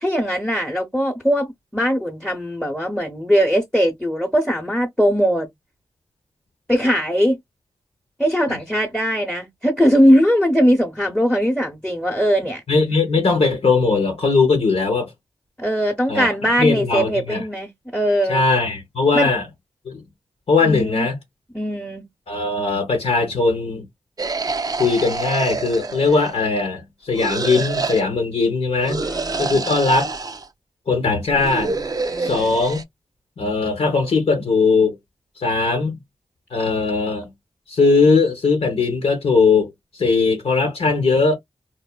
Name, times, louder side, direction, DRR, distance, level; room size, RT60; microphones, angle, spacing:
voice 1, 0.0-5.5 6.7-7.4 8.2-12.6 15.6-18.4 19.1-19.3 20.6-21.1 21.5-22.1 29.0-29.6 32.0-32.6, equal, 5° left, 0.9 m, -20 dB
voice 2, 12.7-15.1 16.1-16.3 16.6-17.4 18.3-19.4 19.8-20.0 20.5-21.1 22.3-23.9 24.8-29.0 29.4-30.1 30.9-31.7 32.2-32.8 33.4-35.0 35.4-36.0 36.5-37.3 37.7-39.7 40.0-41.4, left 4 dB, 70° left, 1.0 m, -19 dB
sound 1, 24.2-26.5 27.1-28.0 28.8-30.5 31.3-32.8, right 3 dB, 35° right, 0.4 m, -27 dB
3.3 x 2.0 x 2.2 m
cardioid pair, 45°, 11 cm